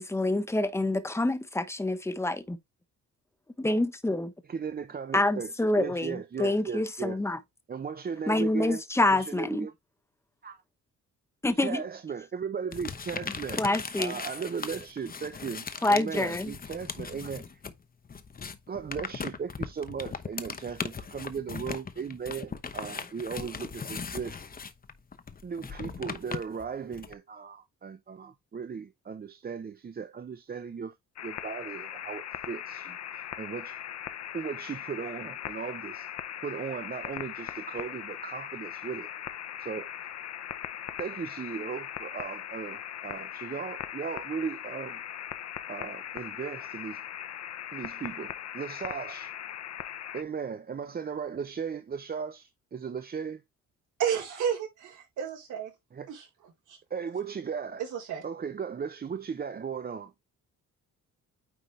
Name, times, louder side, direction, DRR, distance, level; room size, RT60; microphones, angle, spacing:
voice 1, 0.0-2.6 3.6-4.3 5.1-7.4 8.3-9.7 11.4-11.8 13.6-14.2 15.8-16.5, left 2 dB, 10° left, 1.1 m, -27 dB
voice 2, 4.5-7.2 7.7-8.8 9.1-9.7 10.4-10.6 11.6-13.6 14.0-17.6 18.7-24.4 25.4-31.0 31.2-33.8 34.3-36.1 36.4-39.1 39.6-39.9 41.0-45.0 45.7-47.0 47.7-49.3 50.1-53.4 55.9-56.1 56.9-57.8 58.2-60.1, right 6 dB, 30° right, 0.7 m, -37 dB
sound 1, 12.7-17.8 18.1-27.1, left 5 dB, 30° left, 0.9 m, -38 dB
sound 2, 31.1-50.2, left 10 dB, 60° left, 0.9 m, -39 dB
voice 3, 54.0-55.7 56.1-56.3 56.7-56.8 57.8-58.2, right 8 dB, 80° right, 4.1 m, -31 dB
9.4 x 3.8 x 3.2 m
cardioid pair, 90°, 30 cm